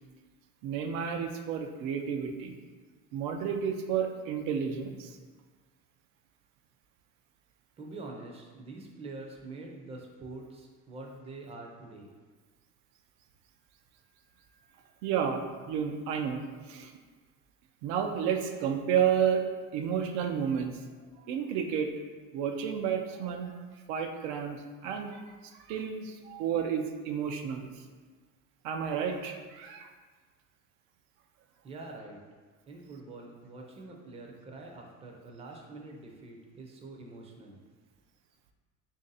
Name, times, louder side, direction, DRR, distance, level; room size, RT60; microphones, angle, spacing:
voice 1, 0.6-2.6 3.1-5.2 15.0-16.9 17.8-19.4 19.7-20.8 21.3-21.9 22.3-23.6 23.9-27.7 28.6-29.9, right 7 dB, 85° right, 5 dB, 0.5 m, -31 dB
voice 2, 7.8-12.1 31.6-32.2 32.7-37.6, right 2 dB, 20° right, 0 dB, 0.5 m, -45 dB
3.4 x 2.7 x 3.9 m, 1.4 s
cardioid pair, 135°, 33 cm